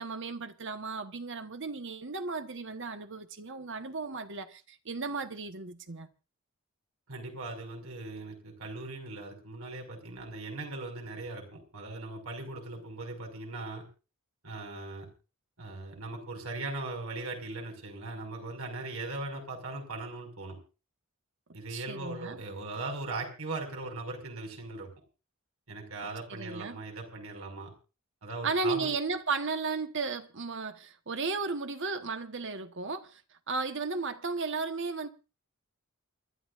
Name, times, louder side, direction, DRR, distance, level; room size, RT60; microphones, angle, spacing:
voice 1, 0.0-6.1 21.7-22.4 26.3-26.8 28.4-33.2 33.5-35.1, right 4 dB, 60° right, 1.3 m, -34 dB
voice 2, 7.1-13.8 14.4-15.1 15.6-20.6 21.5-24.9 25.7-27.7 28.2-28.9, right 2 dB, 85° right, 5.7 m, -39 dB
28.5 x 12.5 x 2.6 m
head